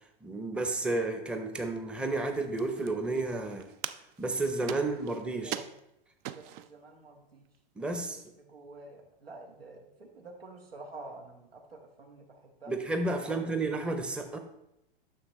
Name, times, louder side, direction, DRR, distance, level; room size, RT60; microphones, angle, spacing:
voice 1, 0.2-3.7 4.2-5.6 7.8-8.2 12.7-14.4, right 2 dB, 5° right, 5 dB, 0.7 m, -31 dB
sound 1, 2.1-6.8 7.5-7.6 7.8-8.3, right 11 dB, 30° right, 0.4 m, -43 dB
voice 2, 4.8-5.1 5.4-5.8 6.3-7.5 8.4-12.7 13.3-13.6, right 2 dB, 85° right, 2 dB, 1.5 m, -48 dB
9.7 x 6.3 x 3.1 m, 0.83 s
hypercardioid pair, 100°, 29 cm